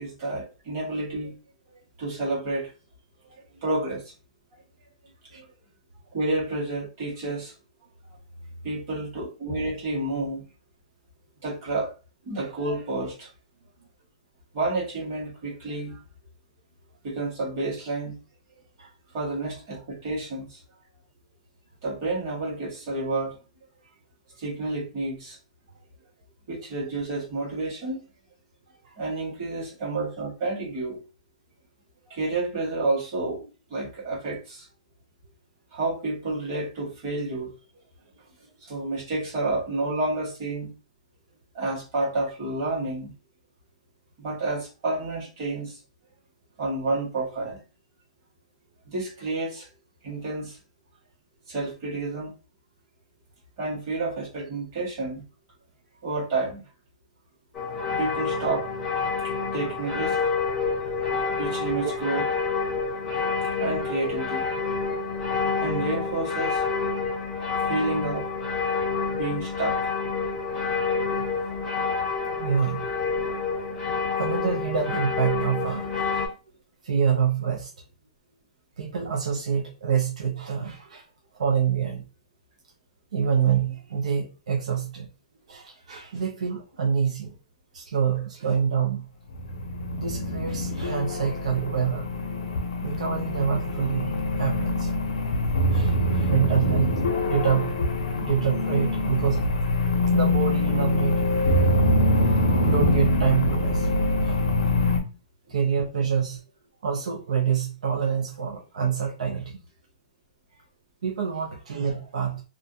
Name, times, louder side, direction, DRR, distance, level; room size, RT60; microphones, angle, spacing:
voice 1, 0.0-1.3 1.7-2.7 3.6-4.1 5.3-5.4 6.1-7.5 8.6-10.4 11.4-11.9 12.2-13.3 14.5-16.0 17.0-18.2 19.1-20.6 21.8-23.3 24.4-25.4 26.5-28.0 29.0-31.0 32.1-34.7 35.7-37.5 38.6-40.7 41.5-43.1 44.2-45.8 46.6-47.6 48.8-49.7 50.0-50.6 51.5-52.3 53.6-55.2 56.0-56.6 58.0-58.7 59.2-60.2 60.7-60.9 61.2-62.3 63.4-65.0 65.3-66.6 67.7-68.3 69.1-69.9, right 2 dB, 30° right, 1.3 m, -30 dB
voice 2, 28.8-29.2 61.8-61.9 70.4-71.3 71.6-71.7 72.3-72.8 74.2-76.3 76.8-77.7 78.8-81.0 81.4-82.0 83.1-85.1 85.5-87.4 87.7-89.1 89.9-92.1 92.8-94.9 95.7-97.8 98.2-99.5 100.1-101.2 102.6-104.4 105.5-106.4 106.8-109.6 111.0-112.4, right 7 dB, 70° right, 0.5 m, -27 dB
sound 1, 57.5-76.3, left 4 dB, 15° left, 0.6 m, -28 dB
sound 2, 89.3-105.0, left 1 dB, 70° left, 0.6 m, -24 dB
2.5 x 2.2 x 2.7 m
hypercardioid pair, 175°, 4 cm